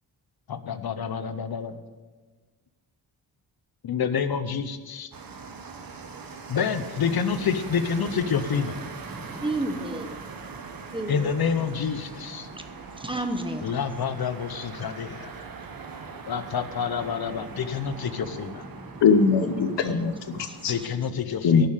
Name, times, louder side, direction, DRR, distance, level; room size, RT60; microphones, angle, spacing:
voice 1, 0.5-1.8 3.8-5.1 6.5-8.8 11.1-12.5 13.6-15.3 16.3-18.6 20.7-21.7, left 6 dB, 60° left, 11 dB, 0.8 m, -28 dB
sound 1, 5.1-20.9, right 5 dB, 55° right, 1.3 m, -41 dB
voice 2, 9.0-10.1 10.9-11.3 12.2-13.7 17.3-19.0 19.6-19.9 20.3-21.2, right 1 dB, 10° right, 6 dB, 1.1 m, -35 dB
voice 3, 19.0-20.7 21.4-21.7, left 5 dB, 80° left, 10 dB, 1.0 m, -21 dB
11.0 x 7.3 x 8.2 m, 1.4 s
wide cardioid pair, 120°, 42 cm